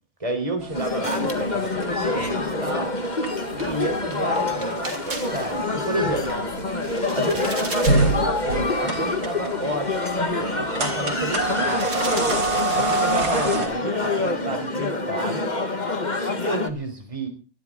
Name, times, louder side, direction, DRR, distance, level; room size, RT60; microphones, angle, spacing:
voice 1, 0.2-3.0 3.5-6.3 7.2-10.0 10.5-11.9 12.7-15.8 16.2-17.3, right 2 dB, 20° right, 4 dB, 4.0 m, -31 dB
sound 1, 0.6-13.7, right 2 dB, 80° right, 4.5 m, -28 dB
sound 2, 0.7-16.7, left 3 dB, 30° left, 1.8 m, -26 dB
sound 3, 3.6-6.0 6.4-8.2 8.5-8.6 9.0-9.1 9.8-10.2 11.5-13.6 13.9-14.2 14.4-14.9, right 2 dB, 60° right, 4.1 m, -38 dB
23.0 x 12.5 x 3.8 m, 0.35 s
omnidirectional pair, 1.7 m